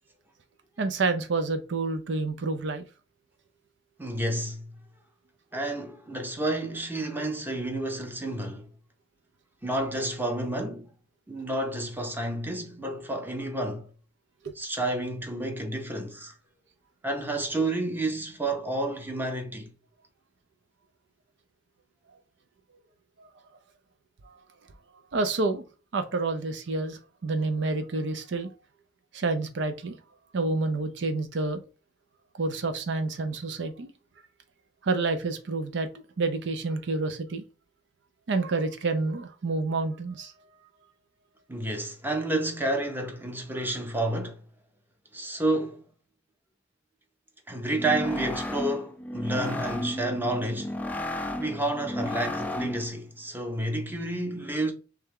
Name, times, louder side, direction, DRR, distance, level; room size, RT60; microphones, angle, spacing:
voice 1, 0.8-2.8 14.4-14.5 23.2-23.3 24.2-24.4 25.1-25.6 25.9-28.5 29.1-30.0 30.3-31.6 32.4-33.9 34.8-35.9 36.2-37.4 38.3-40.3, right 3 dB, 70° right, 0.5 m, -28 dB
voice 2, 4.0-4.7 5.5-8.7 9.6-10.9 11.3-13.9 14.6-16.3 17.0-19.7 41.5-44.4 45.1-45.8 47.5-50.7 51.4-54.7, right 1 dB, 10° right, 0.9 m, -30 dB
sound 1, 47.7-53.0, left 1 dB, 10° left, 0.4 m, -33 dB
3.4 x 3.3 x 3.6 m
head